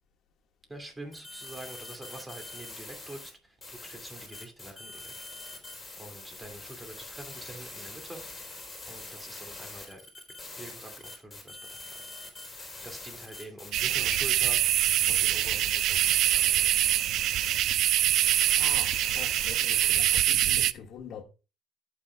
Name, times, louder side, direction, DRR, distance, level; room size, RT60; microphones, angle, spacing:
voice 1, 0.7-5.1 6.0-8.2 8.9-10.0 10.4-11.9 12.8-14.6 15.1-16.0 16.3-16.7, right 1 dB, 15° right, 2.5 m, -45 dB
sound 1, 1.1-3.3 3.6-20.2, left 2 dB, 15° left, 3.7 m, -44 dB
sound 2, 13.7-20.7, right 12 dB, 65° right, 0.4 m, -24 dB
voice 2, 18.6-21.2, left 7 dB, 60° left, 1.7 m, -44 dB
14.5 x 6.1 x 2.3 m
cardioid pair, 120°, 0 cm